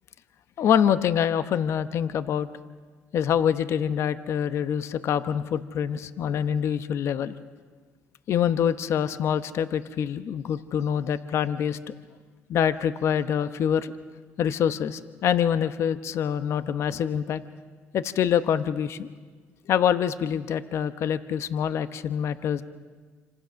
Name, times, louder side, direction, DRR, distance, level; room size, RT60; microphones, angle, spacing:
voice 1, 0.6-2.5 3.1-7.3 8.3-11.9 12.5-13.9 14.4-17.4 17.9-19.1 19.7-22.6, left 8 dB, 65° left, 12 dB, 0.9 m, -25 dB
27.0 x 25.5 x 6.4 m, 1.4 s
supercardioid pair, 80°, 5 cm